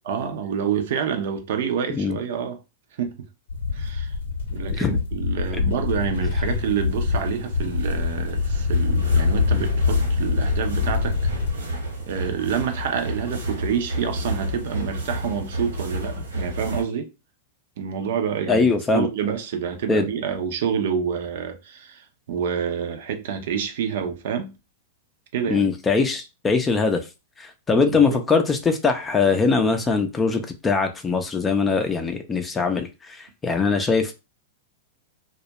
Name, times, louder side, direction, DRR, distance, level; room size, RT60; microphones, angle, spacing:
voice 1, 0.1-2.6 3.0-3.2 3.7-4.1 4.5-11.2 12.1-17.1 17.8-18.7 18.9-24.5 25.3-25.7 27.9-28.2, right 7 dB, 65° right, 0.5 m, -27 dB
sound 1, 3.5-11.5, left 4 dB, 75° left, 0.7 m, -24 dB
sound 2, 6.4-16.8, right 1 dB, 90° right, 1.1 m, -32 dB
voice 2, 18.5-19.1 19.9-20.1 25.5-27.0 27.4-34.1, left 4 dB, 20° left, 0.4 m, -22 dB
2.3 x 2.1 x 2.8 m
hypercardioid pair, 105°, 0 cm